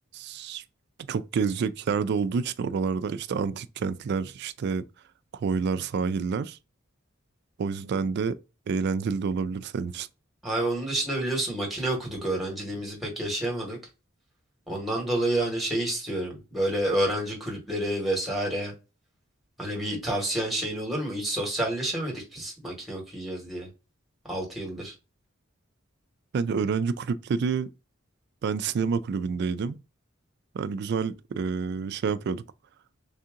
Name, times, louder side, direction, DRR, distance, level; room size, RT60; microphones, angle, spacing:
voice 1, 0.1-0.6 1.1-4.8 5.3-6.6 7.6-8.4 8.7-10.1 26.3-27.7 28.4-29.8 30.5-32.4, right 5 dB, 55° right, 0.3 m, -28 dB
voice 2, 10.4-13.8 14.7-18.7 19.6-23.7 24.3-24.9, right 1 dB, ahead, 1.4 m, -29 dB
3.4 x 2.8 x 3.6 m
head